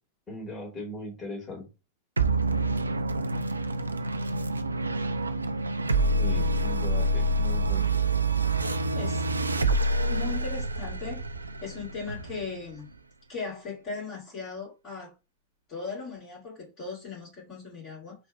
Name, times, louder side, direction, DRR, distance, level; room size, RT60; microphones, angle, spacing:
voice 1, 0.3-1.7 6.2-7.9, left 1 dB, 20° left, 2.4 m, -39 dB
sound 1, 2.2-12.9, right 2 dB, 80° right, 0.4 m, -27 dB
voice 2, 8.9-9.3 10.1-11.2 11.6-12.9 13.3-15.1 15.7-18.3, left 5 dB, 35° left, 2.3 m, -38 dB
4.3 x 2.5 x 4.8 m
figure-of-eight pair, 90°, 0 cm